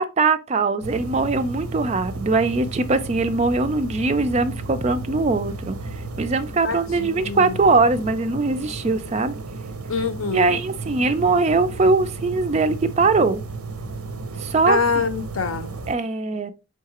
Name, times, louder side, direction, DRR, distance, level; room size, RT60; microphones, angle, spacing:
voice 1, 0.0-5.8 6.2-9.3 10.3-13.4 14.4-14.8 15.9-16.5, right 3 dB, 30° right, 0.3 m, -21 dB
sound 1, 0.8-15.9, right 3 dB, 90° right, 0.7 m, -34 dB
voice 2, 6.6-7.6 9.9-10.6 14.7-15.7, left 5 dB, 70° left, 0.6 m, -25 dB
4.7 x 3.6 x 2.9 m
head